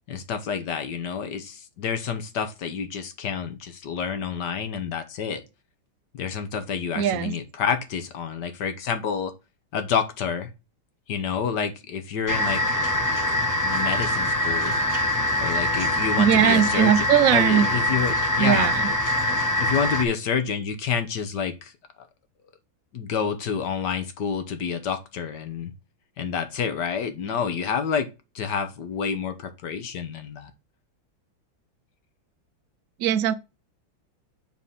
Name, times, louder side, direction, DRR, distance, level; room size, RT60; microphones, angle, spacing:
voice 1, 0.1-5.4 6.1-9.3 9.7-10.5 11.1-12.8 13.1-14.7 15.4-17.0 17.3-18.7 19.6-22.1 22.9-25.7 26.2-28.1 28.3-30.5, left 6 dB, 60° left, 1.6 m, -28 dB
voice 2, 7.0-7.3 16.2-17.7 18.4-18.9 33.0-33.3, right 10 dB, 65° right, 0.8 m, -20 dB
sound 1, 12.3-20.0, left 1 dB, 15° left, 0.8 m, -24 dB
7.5 x 4.1 x 5.6 m
omnidirectional pair, 2.2 m